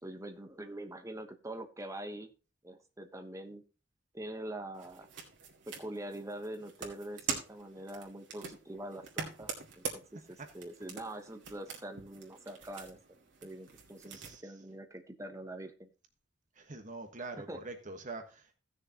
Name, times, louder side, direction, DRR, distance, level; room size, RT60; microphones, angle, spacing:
voice 1, 0.0-2.3 2.6-3.6 4.1-5.1 5.7-9.5 9.8-10.0 10.3-13.0 13.4-15.9 17.5-17.6, right 1 dB, 15° right, 1.1 m, -44 dB
sound 1, 4.7-14.3, right 5 dB, 80° right, 2.2 m, -44 dB
voice 2, 14.1-14.4 16.5-18.6, right 3 dB, 45° right, 1.3 m, -44 dB
16.5 x 6.5 x 2.9 m
head